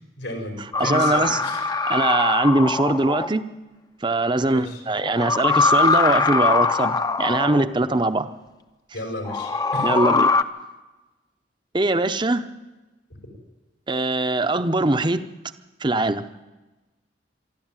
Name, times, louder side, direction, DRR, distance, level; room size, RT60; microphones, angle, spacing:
voice 1, 0.2-1.6 4.4-4.8 8.9-10.0, left 1 dB, 85° left, 2 dB, 5.3 m, -33 dB
sound 1, 0.7-3.3 5.0-7.7 9.2-10.4, left 4 dB, 20° left, 0.6 m, -22 dB
voice 2, 0.8-1.4 1.9-3.5 4.0-8.3 9.8-10.3 11.7-12.5 13.9-15.3 15.8-16.2, right 2 dB, 25° right, 11 dB, 0.7 m, -22 dB
23.5 x 12.5 x 9.0 m, 1.1 s
head